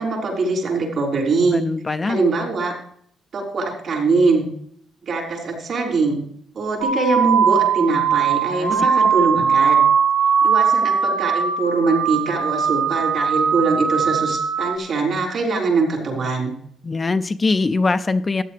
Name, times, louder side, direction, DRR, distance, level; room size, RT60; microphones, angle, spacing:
voice 1, 0.0-1.6 2.1-2.7 3.3-4.5 5.0-6.2 6.5-9.9 10.4-16.5, right 3 dB, 55° right, 0 dB, 6.0 m, -22 dB
voice 2, 1.5-2.2 8.5-8.7 9.0-9.1 16.8-18.4, left 3 dB, 30° left, 10 dB, 0.6 m, -22 dB
sound 1, 6.8-14.8, right 6 dB, 80° right, 1.4 m, -19 dB
14.5 x 10.0 x 3.4 m, 0.64 s
cardioid pair, 90°, 0 cm